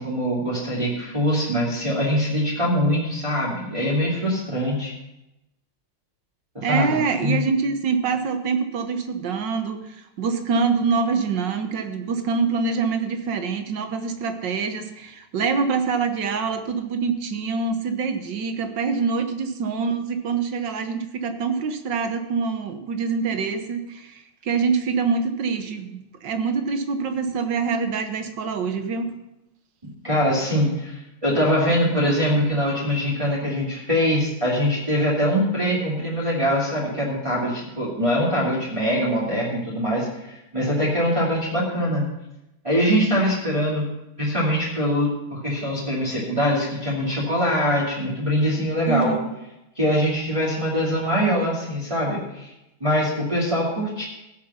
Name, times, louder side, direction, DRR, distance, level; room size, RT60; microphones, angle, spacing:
voice 1, 0.0-4.9 6.5-6.9 7.2-7.4 30.0-42.0 42.6-43.8 44.2-49.1 49.8-52.5 52.8-54.0, equal, 15° right, -6 dB, 2.7 m, -23 dB
voice 2, 6.6-29.1 48.9-49.3, right 5 dB, 60° right, 8 dB, 1.6 m, -25 dB
15.5 x 7.4 x 5.6 m, 0.90 s
omnidirectional pair, 2.3 m